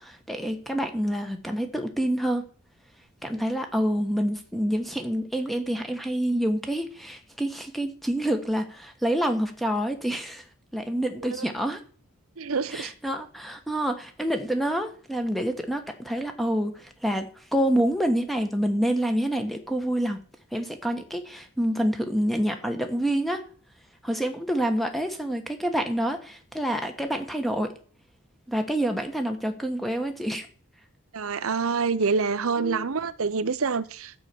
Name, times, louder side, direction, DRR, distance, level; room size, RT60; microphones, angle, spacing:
voice 1, 0.0-2.4 3.2-10.4 10.7-11.8 12.7-20.2 20.5-23.4 24.0-27.7 28.5-30.5 32.6-32.9, right 1 dB, ahead, 1.3 m, -27 dB
voice 2, 12.4-12.9 31.1-34.1, right 5 dB, 80° right, 0.7 m, -27 dB
12.5 x 5.8 x 8.4 m
head